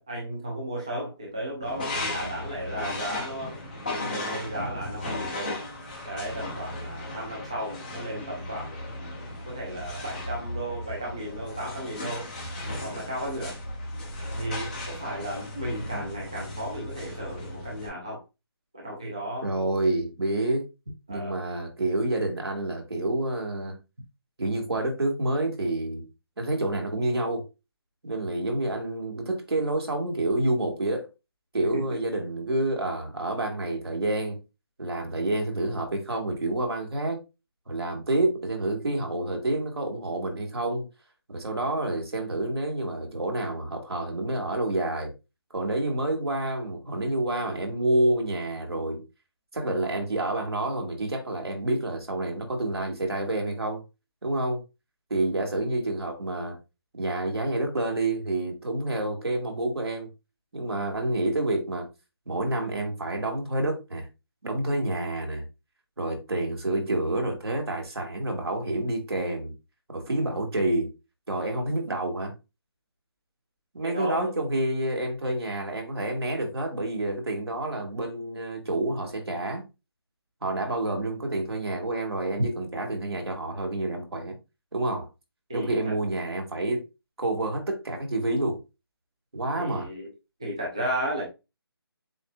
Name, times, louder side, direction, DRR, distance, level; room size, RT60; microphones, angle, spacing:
voice 1, 0.0-3.6 3.9-5.6 6.0-8.8 9.5-12.3 12.8-13.6 14.3-18.2 18.7-19.5 21.1-21.4 31.7-31.8 73.8-74.3 85.5-85.9 89.5-90.1 90.4-91.3, right 1 dB, 10° right, 0.5 m, -34 dB
sound 1, 1.6-17.9, left 1 dB, 20° left, 1.4 m, -36 dB
voice 2, 19.4-20.7 21.1-23.8 24.4-26.0 26.4-27.4 28.0-31.1 31.5-34.4 34.8-37.2 37.7-40.9 41.3-45.1 45.5-49.0 49.5-53.8 54.2-54.6 55.1-56.5 56.9-60.1 60.5-61.9 62.2-64.1 64.4-65.4 66.0-69.5 69.9-70.9 71.3-72.3 73.7-79.6 80.4-84.3 84.7-85.1 85.5-86.8 87.2-88.6 89.3-89.9, right 2 dB, 75° right, 1.9 m, -28 dB
7.4 x 2.5 x 2.3 m
hypercardioid pair, 180°, 13 cm